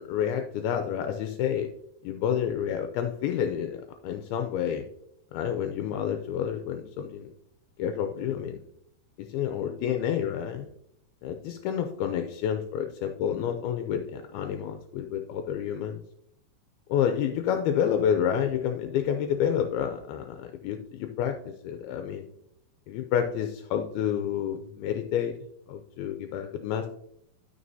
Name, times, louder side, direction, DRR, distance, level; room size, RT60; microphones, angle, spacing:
voice 1, 0.0-1.7 2.0-4.9 5.3-7.3 7.8-8.6 9.2-10.7 11.2-16.0 16.9-22.3 22.9-25.3 25.7-26.9, left 9 dB, 80° left, 5 dB, 2.4 m, -29 dB
12.5 x 5.9 x 2.7 m, 0.76 s
omnidirectional pair, 4.6 m